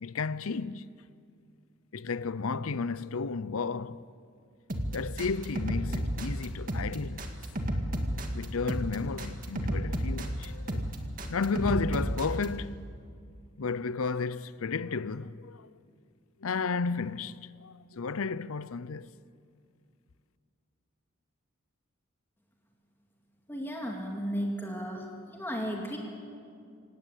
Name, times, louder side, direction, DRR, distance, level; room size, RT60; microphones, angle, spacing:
voice 1, 0.0-0.9 1.9-4.1 4.9-7.3 8.3-10.8 11.3-12.9 13.6-15.7 16.4-19.1, left 4 dB, 80° left, 0.7 m, -33 dB
sound 1, 4.7-12.5, equal, 40° right, 2.1 m, -32 dB
voice 2, 23.5-25.1 25.3-26.0, equal, 10° left, 2.3 m, -34 dB
26.5 x 18.0 x 8.3 m
head